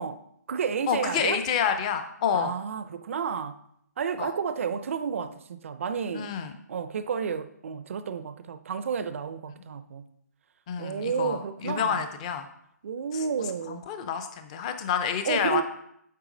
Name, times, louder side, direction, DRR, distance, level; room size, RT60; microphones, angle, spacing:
voice 1, 0.0-1.4 2.3-3.6 4.0-6.3 6.7-10.1 10.8-12.0 12.8-13.9 15.2-15.6, right 6 dB, 50° right, 0.4 m, -31 dB
voice 2, 0.9-2.5 4.2-4.3 6.1-6.5 10.7-12.5 13.7-15.6, left 7 dB, 20° left, 0.5 m, -28 dB
8.2 x 4.6 x 3.8 m
hypercardioid pair, 160°, 9 cm